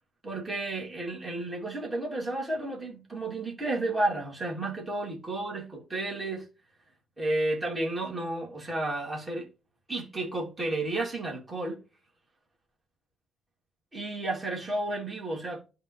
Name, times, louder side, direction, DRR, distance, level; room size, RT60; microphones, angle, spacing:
voice 1, 0.2-6.5 7.2-9.5 9.9-11.8 13.9-15.6, right 2 dB, 20° right, 3.0 m, -32 dB
11.5 x 4.0 x 3.3 m
cardioid pair, 125°, 0 cm